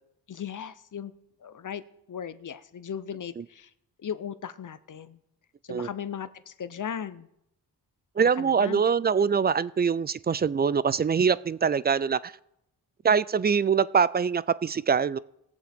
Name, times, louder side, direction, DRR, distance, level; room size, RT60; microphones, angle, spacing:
voice 1, 0.3-1.1 1.4-1.8 2.1-3.7 4.0-5.2 5.6-7.3 8.2-8.8, left 8 dB, 50° left, 13 dB, 0.8 m, -37 dB
voice 2, 8.2-12.3 13.0-15.2, right 6 dB, 25° right, 19 dB, 0.3 m, -24 dB
20.5 x 7.5 x 3.6 m, 0.79 s
cardioid pair, 70°, 40 cm